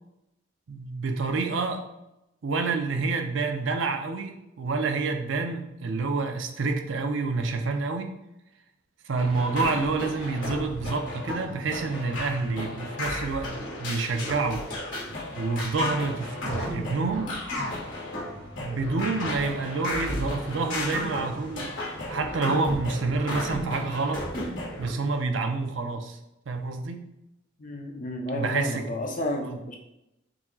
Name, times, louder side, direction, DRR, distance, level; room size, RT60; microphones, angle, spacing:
voice 1, 0.7-1.8 2.4-8.1 9.0-14.6 15.3-17.4 18.6-21.8 22.1-24.3 24.8-26.2 26.5-27.1 28.3-28.9 29.4-29.6, right 3 dB, 70° right, 5 dB, 0.5 m, -28 dB
sound 1, 9.2-24.9, left 1 dB, 65° left, 1.5 m, -34 dB
voice 2, 27.6-29.8, left 1 dB, 40° left, 2 dB, 0.6 m, -32 dB
4.7 x 2.1 x 3.8 m, 0.88 s
head